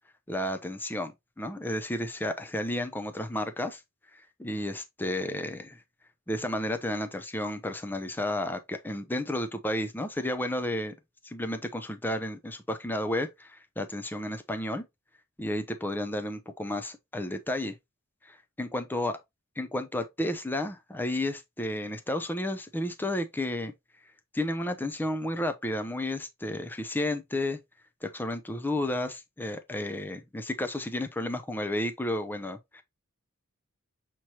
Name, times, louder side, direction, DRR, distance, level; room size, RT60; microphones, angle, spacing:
voice 1, 0.3-3.8 4.4-5.8 6.3-11.0 11.2-14.8 15.4-17.7 18.3-19.1 19.6-23.7 24.3-27.6 28.0-32.8, left 1 dB, 10° left, 0.5 m, -32 dB
5.9 x 3.1 x 2.8 m
head